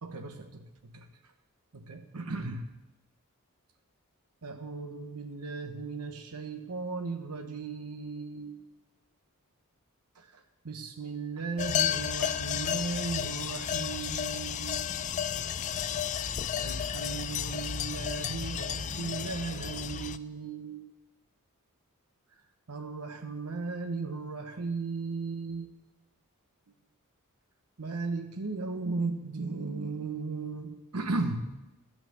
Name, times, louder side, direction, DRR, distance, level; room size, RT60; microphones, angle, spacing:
voice 1, 0.0-1.1 1.7-2.7 4.4-8.6 10.1-14.8 16.1-20.9 22.7-25.7 27.8-31.6, right 4 dB, 90° right, 6 dB, 1.0 m, -36 dB
sound 1, 11.6-20.2, left 9 dB, 35° left, 0.3 m, -32 dB
12.0 x 5.9 x 8.2 m, 0.99 s
head